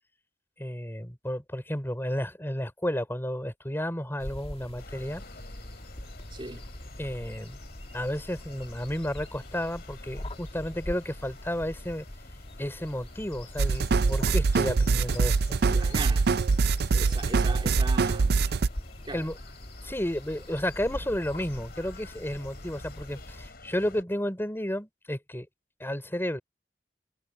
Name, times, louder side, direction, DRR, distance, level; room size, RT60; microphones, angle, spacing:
voice 1, 0.6-5.2 7.0-7.6 7.9-12.1 12.6-15.6 19.1-19.3 19.8-25.5 25.8-26.4, equal, 15° left, 5.4 m, -32 dB
sound 1, 4.2-23.5, left 1 dB, 35° left, 2.1 m, -43 dB
sound 2, 4.8-24.0, left 2 dB, 60° left, 7.3 m, -51 dB
voice 2, 6.3-6.7 15.7-16.4 16.9-18.5 19.0-19.2, right 2 dB, 30° right, 3.0 m, -39 dB
sound 3, 13.6-18.7, right 4 dB, 65° right, 0.5 m, -24 dB
head